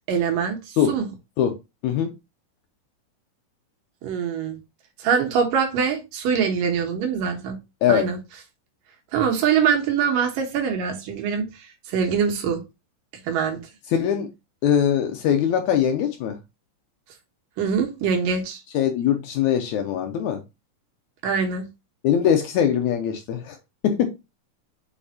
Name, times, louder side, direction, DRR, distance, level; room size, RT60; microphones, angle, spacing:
voice 1, 0.1-1.1 4.0-4.6 5.0-7.6 7.9-8.2 9.1-12.6 13.2-13.6 17.6-18.6 21.2-21.7, right 6 dB, 75° right, 2.8 m, -23 dB
voice 2, 13.9-14.3 14.6-16.4 18.7-20.4 22.0-23.6 23.8-24.1, left 9 dB, 70° left, 1.9 m, -21 dB
6.9 x 5.3 x 2.7 m
omnidirectional pair, 4.0 m